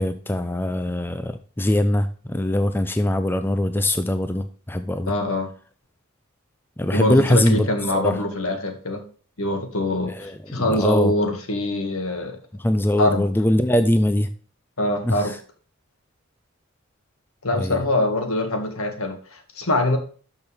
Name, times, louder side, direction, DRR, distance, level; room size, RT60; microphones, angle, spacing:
voice 1, 0.0-5.1 6.8-7.7 7.9-8.2 10.1-11.1 12.6-14.3 15.0-15.1 17.6-17.8, left 1 dB, 10° left, 9 dB, 0.4 m, -22 dB
voice 2, 5.1-5.5 6.9-9.0 9.4-12.4 13.0-13.3 14.8-15.3 17.4-20.0, left 1 dB, 75° left, 5 dB, 2.0 m, -24 dB
12.0 x 6.2 x 3.5 m, 0.40 s
head